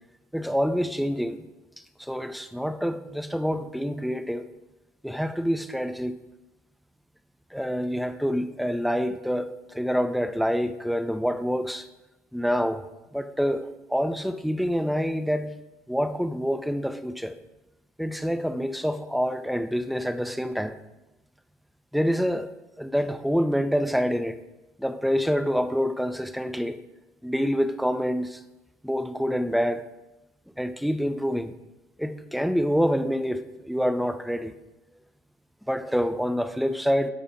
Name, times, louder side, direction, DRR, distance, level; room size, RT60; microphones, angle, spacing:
voice 1, 0.3-1.4 2.0-4.5 5.0-6.1 7.5-11.9 12.3-12.8 13.1-15.5 15.9-17.4 18.0-20.7 21.9-22.5 22.8-24.4 24.8-26.8 27.2-28.4 28.8-29.8 30.6-31.5 32.0-34.5 35.7-37.1, equal, ahead, 0.8 m, -26 dB
12.5 x 5.5 x 5.1 m
figure-of-eight pair, 55°, 8 cm